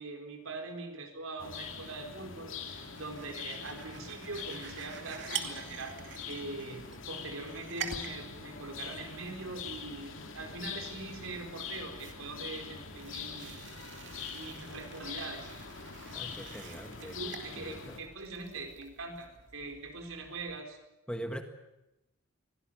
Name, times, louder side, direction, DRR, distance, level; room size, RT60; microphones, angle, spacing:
voice 1, 0.0-6.0 6.3-13.6 14.3-15.5 17.0-20.8, right 3 dB, 75° right, 4 dB, 4.5 m, -42 dB
sound 1, 1.4-18.0, left 6 dB, 65° left, 2.5 m, -44 dB
sound 2, 2.7-20.6, right 8 dB, 60° right, 2.5 m, -48 dB
voice 2, 16.1-17.2 17.5-18.0 21.1-21.4, equal, 5° left, 6 dB, 1.7 m, -41 dB
23.5 x 17.0 x 8.8 m, 0.93 s
head